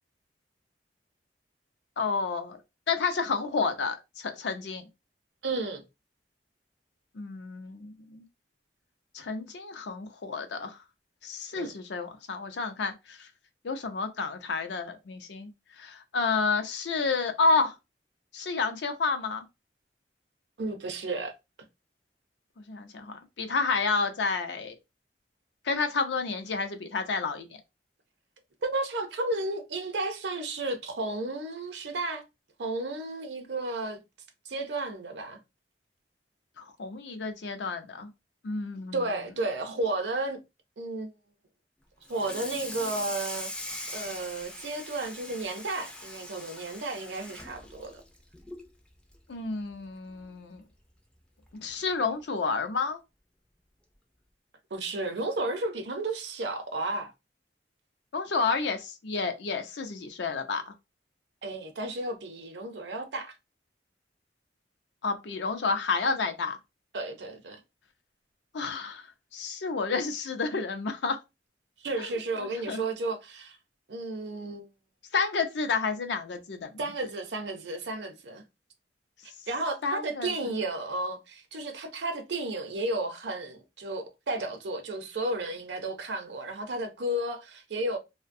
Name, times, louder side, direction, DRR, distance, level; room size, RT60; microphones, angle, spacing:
voice 1, 2.0-2.6 2.9-4.9 7.1-8.2 9.1-10.8 11.2-13.3 13.6-17.8 18.3-19.4 22.6-24.8 25.6-27.5 36.6-38.1 38.4-39.2 49.3-50.6 51.5-53.0 58.1-60.7 65.0-66.6 68.5-69.1 69.3-71.2 72.0-72.8 75.1-76.7 79.8-80.3, left 4 dB, 75° left, 0.5 m, -30 dB
voice 2, 5.4-5.8 11.5-11.7 20.6-21.3 28.6-32.2 32.6-34.0 34.5-35.4 38.9-40.4 40.8-41.1 42.1-48.0 54.7-57.1 61.4-63.4 66.9-67.6 71.8-73.6 73.9-74.7 76.8-78.4 79.5-88.0, right 2 dB, 70° right, 0.6 m, -33 dB
Water tap faucet / Sink (filling or washing), 42.0-48.7 49.1-49.3 49.7-49.8 50.2-50.3 51.4-51.5 52.0-52.2, left 1 dB, 5° left, 0.3 m, -41 dB
2.6 x 2.1 x 2.5 m
head